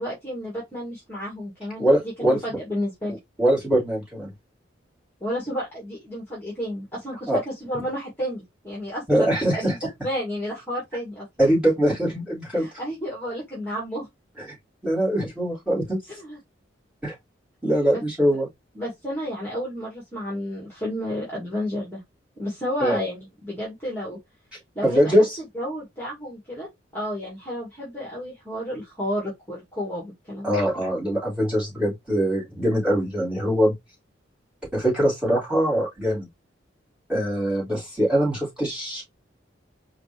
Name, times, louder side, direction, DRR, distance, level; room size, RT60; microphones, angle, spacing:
voice 1, 0.0-1.9 2.3-3.2 5.2-9.8 10.0-11.5 12.5-14.1 16.2-16.4 17.9-18.0 18.7-22.0 22.4-24.2 24.8-25.2 25.5-26.7 26.9-30.6, equal, 10° left, 1.9 m, -31 dB
voice 2, 1.8-2.4 3.4-4.3 7.3-7.4 9.1-9.9 11.4-12.7 14.4-14.5 14.8-16.0 17.0-17.1 17.6-18.5 22.8-23.0 24.8-25.4 30.4-33.7 34.7-36.3 37.1-39.1, equal, 5° right, 3.4 m, -22 dB
4.9 x 2.9 x 3.4 m
head